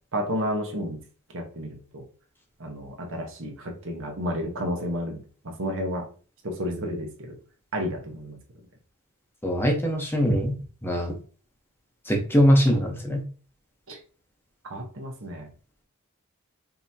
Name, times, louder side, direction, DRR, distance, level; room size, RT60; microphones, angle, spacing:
voice 1, 0.1-1.0 1.3-2.0 2.6-5.2 5.4-6.1 6.4-7.4 7.7-8.4 13.9-14.0 14.7-15.5, equal, 65° right, 2 dB, 1.1 m, -31 dB
voice 2, 9.4-10.5 10.8-11.1 12.0-13.2, equal, 10° left, 2 dB, 0.8 m, -22 dB
5.3 x 2.9 x 2.7 m, 0.39 s
head